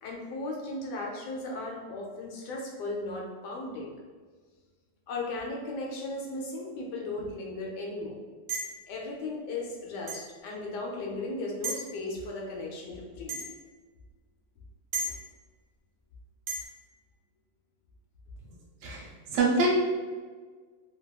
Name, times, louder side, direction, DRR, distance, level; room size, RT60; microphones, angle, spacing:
voice 1, 0.0-3.9 5.1-8.2 8.9-13.4 15.0-15.1, left 2 dB, 75° left, -1 dB, 1.1 m, -36 dB
sound 1, 8.5-8.8 10.1-10.3 11.6-11.9 13.3-13.5 14.9-15.1 16.5-16.7, right 2 dB, 55° right, 0.7 m, -33 dB
voice 2, 18.8-19.7, right 2 dB, 75° right, -3 dB, 1.2 m, -26 dB
3.4 x 2.2 x 2.2 m, 1.5 s
omnidirectional pair, 1.9 m